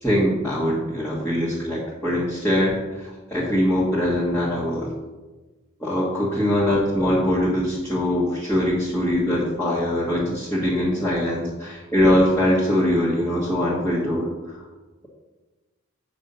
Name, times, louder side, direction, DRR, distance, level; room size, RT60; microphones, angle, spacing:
voice 1, 0.0-4.9 5.8-14.6, left 1 dB, 10° left, -9 dB, 1.5 m, -22 dB
7.5 x 5.3 x 5.5 m, 1.2 s
head